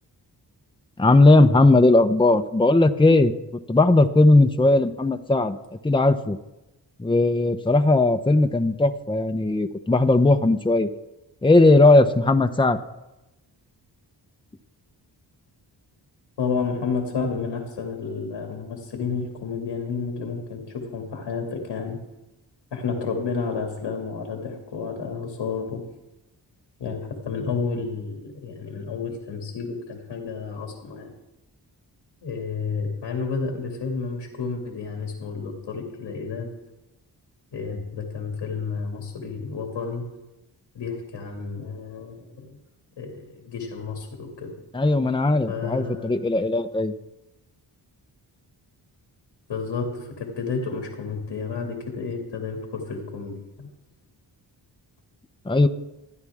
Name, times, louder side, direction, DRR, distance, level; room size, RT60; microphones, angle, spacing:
voice 1, 1.0-3.3 3.7-5.6 5.8-6.4 7.0-10.9 11.4-12.8 44.7-46.9 55.5-55.7, left 2 dB, 10° left, 7 dB, 0.9 m, -18 dB
voice 2, 16.4-22.0 22.7-25.8 26.8-31.1 32.2-36.5 37.5-40.0 40.7-42.6 43.0-44.5 45.5-46.1 49.5-53.7, left 5 dB, 85° left, 1 dB, 2.5 m, -31 dB
26.5 x 9.8 x 3.6 m, 0.97 s
cardioid pair, 65°, 42 cm